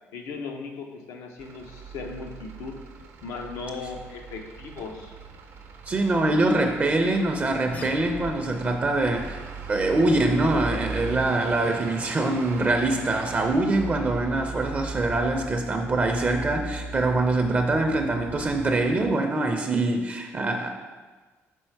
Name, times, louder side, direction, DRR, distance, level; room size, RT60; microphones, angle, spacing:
voice 1, 0.1-2.8 3.2-5.1, left 4 dB, 90° left, 3 dB, 0.7 m, -37 dB
Truck / Idling, 1.4-19.1, right 4 dB, 70° right, 0.7 m, -39 dB
voice 2, 5.9-9.4 9.7-20.7, right 2 dB, 30° right, 4 dB, 0.5 m, -24 dB
sound 1, 7.7-8.7, left 2 dB, 30° left, 0.6 m, -40 dB
5.3 x 4.0 x 4.5 m, 1.3 s
cardioid pair, 110°, 5 cm